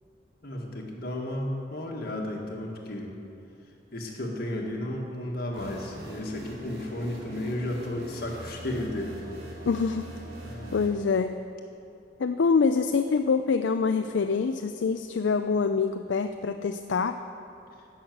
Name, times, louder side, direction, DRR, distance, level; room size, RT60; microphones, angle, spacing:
voice 1, 0.4-3.1 3.9-9.1 10.4-10.8, left 1 dB, 50° left, 0 dB, 1.8 m, -33 dB
sound 1, 5.5-10.9, right 1 dB, 55° right, 2.6 m, -42 dB
voice 2, 9.7-10.1 10.7-11.4 12.2-17.2, left 5 dB, 70° left, 8 dB, 0.4 m, -25 dB
14.5 x 6.4 x 7.9 m, 2.8 s
head